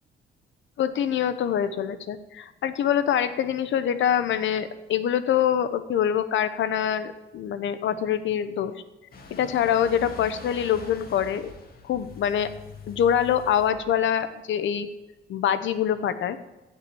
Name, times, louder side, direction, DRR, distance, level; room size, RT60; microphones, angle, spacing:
voice 1, 0.8-8.7 9.3-11.5 11.8-12.5 12.9-14.9 15.3-16.4, left 9 dB, 70° left, 11 dB, 1.0 m, -25 dB
sound 1, 9.1-14.2, left 4 dB, 50° left, 2.2 m, -44 dB
16.0 x 5.9 x 8.7 m, 1.0 s
cardioid pair, 90°, 20 cm